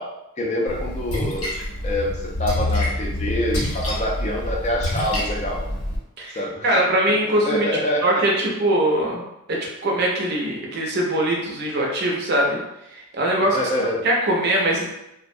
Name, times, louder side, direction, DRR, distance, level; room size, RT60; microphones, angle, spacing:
voice 1, 0.0-1.5 1.8-5.6 6.3-6.8 7.3-8.2 13.5-14.1, left 1 dB, 30° left, -2 dB, 0.4 m, -26 dB
Splash splatter, 0.7-6.0, left 1 dB, 80° left, 0.8 m, -27 dB
voice 2, 6.2-7.7 8.0-12.6 12.9-13.6 14.0-14.9, right 1 dB, 50° right, -2 dB, 0.6 m, -22 dB
2.2 x 2.1 x 2.6 m, 0.87 s
head